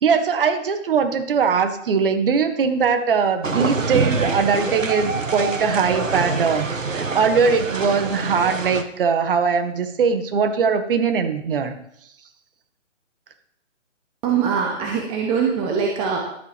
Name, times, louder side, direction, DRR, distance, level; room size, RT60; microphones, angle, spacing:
voice 1, 0.0-11.7, right 5 dB, 45° right, 8 dB, 1.8 m, -21 dB
sound 1, 3.4-8.8, right 4 dB, 90° right, 1.4 m, -25 dB
voice 2, 14.2-16.3, right 6 dB, 15° right, 1 dB, 1.0 m, -22 dB
12.5 x 6.9 x 5.2 m, 0.72 s
figure-of-eight pair, 145°, 38 cm